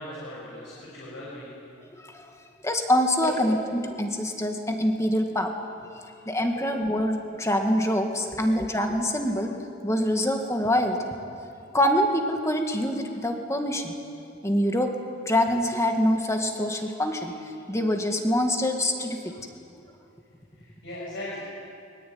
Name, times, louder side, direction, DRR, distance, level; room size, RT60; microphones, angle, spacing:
voice 1, 0.0-1.5 3.2-3.4 6.5-6.7 8.3-8.5 20.6-21.4, left 1 dB, 60° left, -7 dB, 6.8 m, -38 dB
voice 2, 2.6-5.5 6.3-9.6 9.8-11.1 11.7-13.9 14.4-14.9 15.3-19.5, left 1 dB, 15° left, 3 dB, 2.1 m, -25 dB
23.5 x 22.0 x 9.6 m, 2.5 s
head